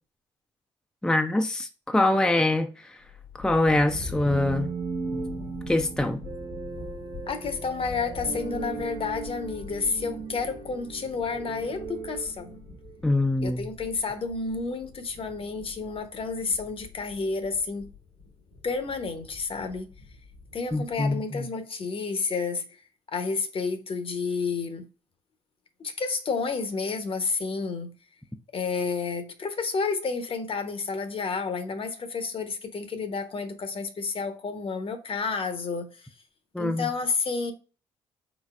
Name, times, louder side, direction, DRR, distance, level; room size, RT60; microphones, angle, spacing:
voice 1, 1.0-3.0 3.4-4.7 5.7-6.2 13.0-13.7 20.7-21.5 36.5-36.9, left 2 dB, 5° left, 0.5 m, -24 dB
sound 1, 3.0-21.1, left 3 dB, 80° left, 1.4 m, -44 dB
sound 2, 4.2-13.2, right 5 dB, 45° right, 1.0 m, -37 dB
voice 2, 7.3-12.6 13.4-17.9 18.6-19.9 20.5-22.7 23.1-24.9 25.8-27.9 28.5-36.0 36.6-37.5, left 4 dB, 45° left, 0.9 m, -30 dB
4.1 x 3.9 x 2.4 m
hypercardioid pair, 45°, 13 cm